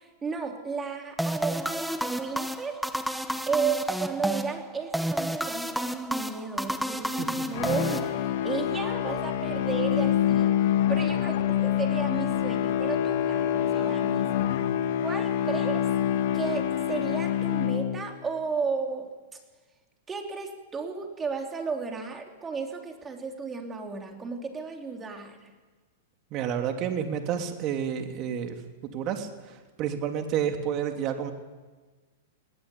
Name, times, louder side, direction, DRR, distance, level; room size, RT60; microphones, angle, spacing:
voice 1, 0.0-2.8 3.5-10.6 10.9-14.5 15.0-15.9 16.3-19.1 20.1-25.5, right 5 dB, 15° right, 3 dB, 3.6 m, -33 dB
sound 1, 1.2-8.6, equal, ahead, 1.1 m, -31 dB
sound 2, 7.5-18.3, left 10 dB, 60° left, 2.3 m, -26 dB
voice 2, 26.3-28.6 28.9-31.3, right 8 dB, 40° right, 5 dB, 3.1 m, -30 dB
21.5 x 18.0 x 8.5 m, 1.3 s
hypercardioid pair, 135°, 0 cm